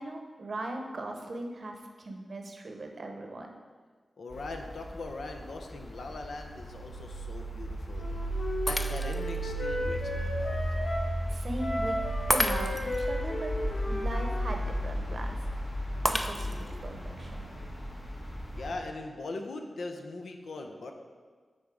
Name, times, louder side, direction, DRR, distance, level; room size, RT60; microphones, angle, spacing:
voice 1, 0.0-3.5 11.0-12.0 12.3-13.5 13.8-15.4 16.1-17.5, right 2 dB, 50° right, 3 dB, 0.7 m, -39 dB
voice 2, 4.2-8.1 8.6-10.6 18.5-20.9, left 2 dB, 80° left, 4 dB, 0.6 m, -40 dB
sound 1, 4.3-18.7, equal, 35° left, 1.2 m, -35 dB
Wind instrument woodwind instrument, 7.9-11.1 11.6-14.9, left 1 dB, 55° left, 1.0 m, -35 dB
Shatter, 8.7-9.4 9.9-10.0 12.3-13.0 16.0-16.8, equal, 5° left, 0.4 m, -30 dB
6.7 x 4.0 x 4.8 m, 1.5 s
wide cardioid pair, 125°, 0 cm